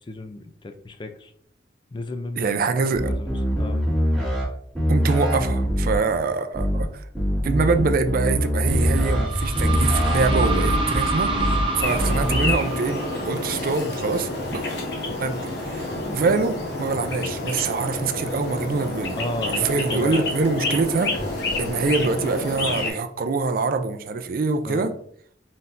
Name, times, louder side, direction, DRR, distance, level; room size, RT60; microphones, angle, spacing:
voice 1, 0.1-1.3 1.9-2.5 2.8-3.8 10.9-11.1 15.1-15.2 16.0-16.2 19.1-20.3 24.6-24.9, left 2 dB, 25° left, 7 dB, 0.3 m, -33 dB
voice 2, 2.4-3.1 4.9-7.1 7.4-14.6 15.2-15.9 16.1-19.2 19.5-21.1 21.6-24.9, right 4 dB, 50° right, 8 dB, 0.4 m, -24 dB
sound 1, 3.0-4.4 4.7-6.0 6.5-6.8 7.1-9.2 9.5-10.8 11.3-11.6 11.9-12.5, equal, ahead, 1.7 m, -23 dB
sound 2, 8.7-14.3, right 2 dB, 30° right, 0.9 m, -26 dB
sound 3, 11.8-22.9, left 2 dB, 60° left, 1.1 m, -29 dB
4.1 x 3.9 x 2.5 m, 0.62 s
head